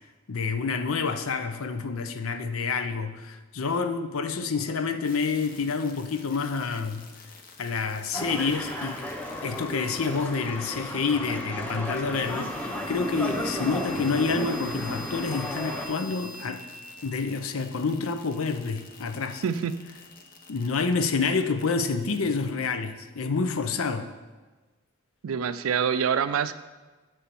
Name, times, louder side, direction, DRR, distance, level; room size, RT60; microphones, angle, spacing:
voice 1, 0.3-7.1 7.6-9.0 9.4-16.6 17.0-19.4 20.5-24.1, left 4 dB, 80° left, 8 dB, 0.6 m, -28 dB
sound 1, 5.0-22.6, left 2 dB, 45° left, 0.9 m, -47 dB
sound 2, 8.1-15.9, equal, 5° left, 0.8 m, -34 dB
voice 2, 19.4-19.8 25.2-26.5, right 7 dB, 75° right, 13 dB, 0.4 m, -26 dB
7.6 x 4.4 x 6.8 m, 1.2 s
head